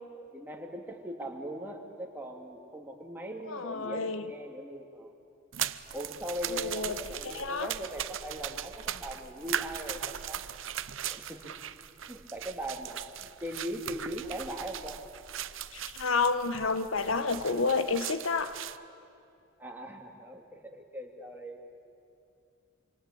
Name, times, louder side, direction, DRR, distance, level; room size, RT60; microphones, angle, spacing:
voice 1, 0.3-5.1 5.9-10.4 11.1-11.4 12.1-15.0 19.6-21.6, equal, 10° right, 1 dB, 2.6 m, -40 dB
voice 2, 3.5-4.3 6.5-7.7 15.7-18.6, left 4 dB, 80° left, 11 dB, 1.3 m, -30 dB
sound 1, 5.5-18.8, right 10 dB, 70° right, 0.8 m, -39 dB
26.0 x 25.0 x 8.7 m, 2.5 s
head